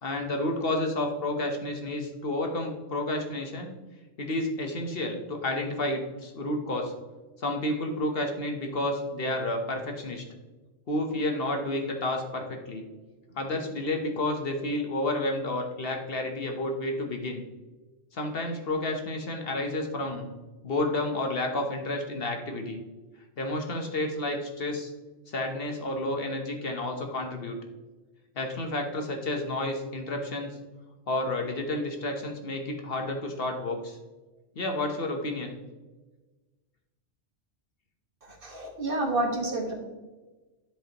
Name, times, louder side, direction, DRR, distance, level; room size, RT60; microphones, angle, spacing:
voice 1, 0.0-3.7 4.2-6.9 7.4-10.2 10.9-12.8 13.3-17.4 18.1-20.3 20.6-22.8 23.4-24.9 25.3-27.6 28.4-30.6 31.1-34.0 34.6-35.6, left 1 dB, 55° left, 3 dB, 1.1 m, -30 dB
voice 2, 38.2-39.7, right 2 dB, 50° right, 1 dB, 1.5 m, -29 dB
11.0 x 5.1 x 2.9 m, 1.2 s
omnidirectional pair, 1.2 m